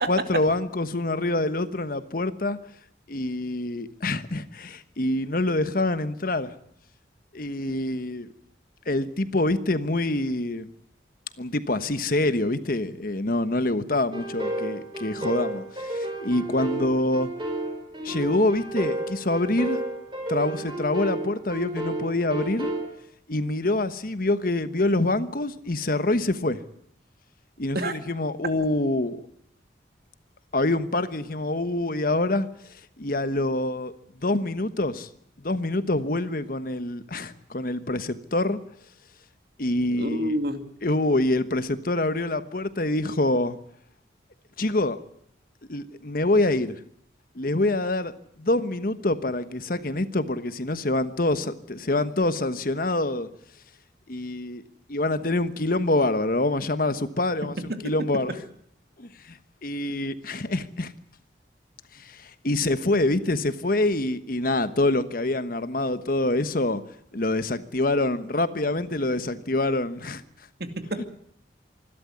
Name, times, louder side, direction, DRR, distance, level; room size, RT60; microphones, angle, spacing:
voice 1, 0.1-2.6 3.1-6.5 7.3-8.3 8.9-10.7 11.4-17.3 18.0-19.8 20.3-22.7 23.3-26.6 27.6-29.3 30.5-35.1 35.4-38.6 39.6-40.3 40.8-43.6 44.6-45.0 45.7-46.8 47.3-53.3 54.1-54.6 54.9-58.4 59.0-60.9 61.9-66.8 67.1-70.2 71.0-71.1, left 2 dB, 50° left, 1.2 m, -26 dB
sound 1, 14.1-22.9, right 1 dB, 25° right, 4.8 m, -32 dB
voice 2, 39.9-40.6 57.7-57.9 70.6-71.1, equal, 55° right, 2.3 m, -29 dB
25.5 x 12.5 x 9.5 m
head